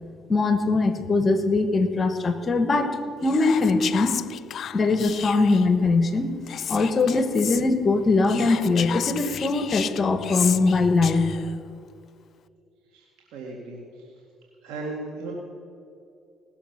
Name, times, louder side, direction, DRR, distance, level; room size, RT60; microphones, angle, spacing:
voice 1, 0.3-4.1 4.7-6.3 6.7-11.3, left 3 dB, 35° left, 10 dB, 1.3 m, -21 dB
Whispering, 3.2-5.7 6.5-7.6 8.2-11.5, left 9 dB, 60° left, 0.3 m, -33 dB
voice 2, 12.9-14.2 14.6-15.3, right 3 dB, 80° right, -1 dB, 1.9 m, -37 dB
18.5 x 7.2 x 5.9 m, 2.5 s
supercardioid pair, 75°, 0 cm